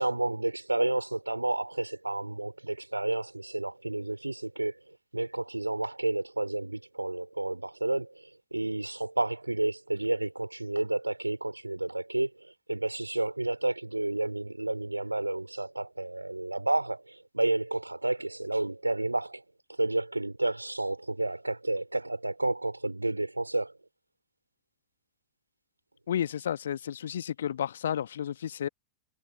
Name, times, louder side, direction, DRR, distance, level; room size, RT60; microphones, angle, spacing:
voice 1, 0.0-4.8 5.1-19.4 19.7-23.7, right 2 dB, 85° right, 3.1 m, -31 dB
voice 2, 26.1-28.7, left 9 dB, 65° left, 1.4 m, -32 dB
figure-of-eight pair, 90°, 0 cm